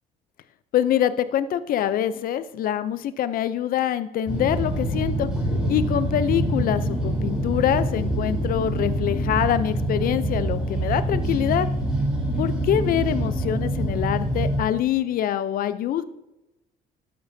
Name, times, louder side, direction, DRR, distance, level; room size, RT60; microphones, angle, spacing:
voice 1, 0.7-5.3 5.7-11.7 12.4-16.0, left 10 dB, 60° left, 14 dB, 0.5 m, -24 dB
sound 1, 4.3-14.6, right 1 dB, 5° right, 2.7 m, -25 dB
11.5 x 7.0 x 2.7 m, 0.95 s
cardioid pair, 110°, 17 cm